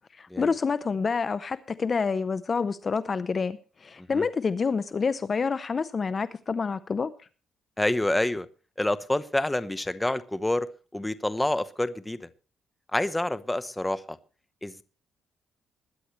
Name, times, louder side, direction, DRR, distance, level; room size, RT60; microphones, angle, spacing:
voice 1, 0.1-7.1, left 5 dB, 40° left, 0.6 m, -28 dB
voice 2, 7.8-8.5 8.8-12.3 12.9-14.2 14.6-14.8, left 1 dB, 10° left, 0.9 m, -28 dB
21.0 x 9.9 x 3.2 m
cardioid pair, 90°, 0 cm